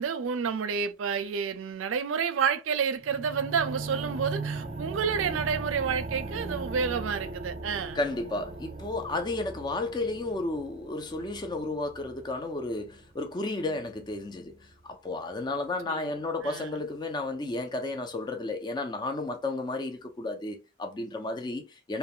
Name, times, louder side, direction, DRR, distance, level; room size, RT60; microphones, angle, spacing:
voice 1, 0.0-8.0 15.9-16.1 16.4-16.7, right 6 dB, 85° right, 0.4 m, -29 dB
sound 1, 3.0-13.1 13.8-13.9, right 3 dB, 35° right, 0.6 m, -38 dB
voice 2, 7.9-22.0, left 2 dB, 20° left, 0.3 m, -33 dB
2.4 x 2.1 x 2.7 m
head